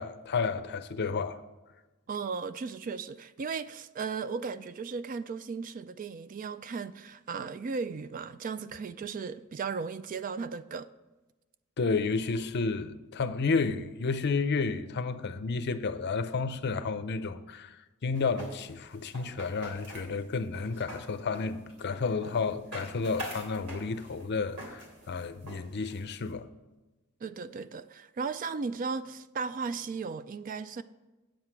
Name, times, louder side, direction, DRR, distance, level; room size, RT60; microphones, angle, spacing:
voice 1, 0.0-1.4 11.8-17.7 18.0-26.5, left 4 dB, 50° left, 0.5 m, -31 dB
voice 2, 2.1-10.9 27.2-30.8, right 5 dB, 35° right, 0.3 m, -36 dB
sound 1, 18.1-26.3, equal, 85° right, 3.2 m, -45 dB
9.1 x 7.7 x 4.6 m
head